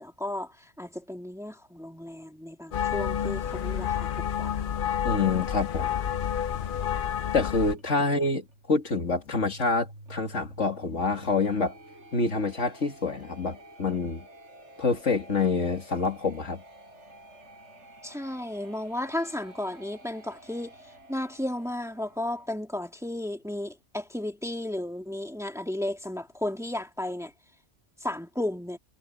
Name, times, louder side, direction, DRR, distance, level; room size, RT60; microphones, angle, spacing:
voice 1, 0.0-4.6 18.0-20.7 21.1-27.3 28.0-28.8, left 1 dB, ahead, 1.9 m, -34 dB
sound 1, 2.7-7.7, left 9 dB, 55° left, 0.7 m, -29 dB
voice 2, 5.0-6.0 7.3-11.8 12.1-14.3 14.8-16.6, left 4 dB, 80° left, 2.6 m, -27 dB
sound 2, 7.3-22.5, right 1 dB, 70° right, 7.9 m, -51 dB
omnidirectional pair, 1.2 m